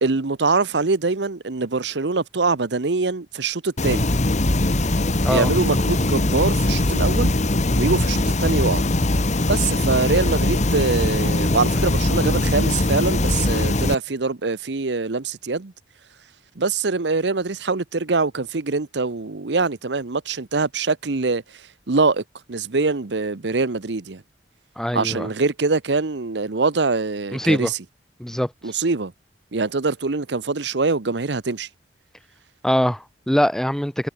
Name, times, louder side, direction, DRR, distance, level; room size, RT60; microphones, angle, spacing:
voice 1, 0.0-4.1 5.3-7.3 7.8-8.9 9.4-15.7 16.6-21.4 21.9-22.2 22.5-24.2 24.9-27.8 28.6-29.1 29.5-31.7, right 3 dB, 70° right, 0.9 m, -23 dB
sound 1, 3.8-13.9, left 2 dB, 40° left, 1.5 m, -21 dB
voice 2, 24.8-25.3 27.3-27.7 28.2-28.5 32.6-34.1, equal, 5° left, 0.6 m, -22 dB
head